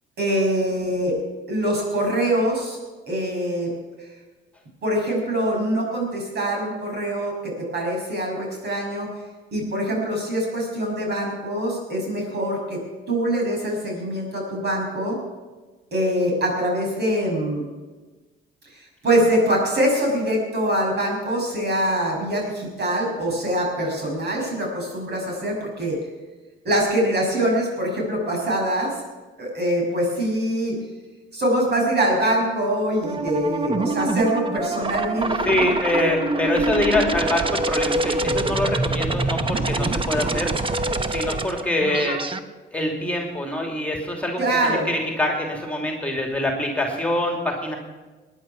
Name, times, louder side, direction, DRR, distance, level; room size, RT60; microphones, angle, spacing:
voice 1, 0.2-1.2 1.5-2.8 3.1-3.7 4.8-9.1 9.5-12.8 13.1-15.2 15.9-17.6 18.7-26.0 26.6-29.0 29.4-30.7 31.3-35.7 44.4-44.9, right 1 dB, 55° right, 0 dB, 6.5 m, -24 dB
sound 1, 33.0-42.4, right 2 dB, 25° right, 1.0 m, -25 dB
voice 2, 35.4-42.2 42.7-47.8, left 1 dB, 5° left, 1 dB, 2.8 m, -25 dB
19.5 x 10.5 x 5.9 m, 1.3 s
cardioid pair, 90°, 20 cm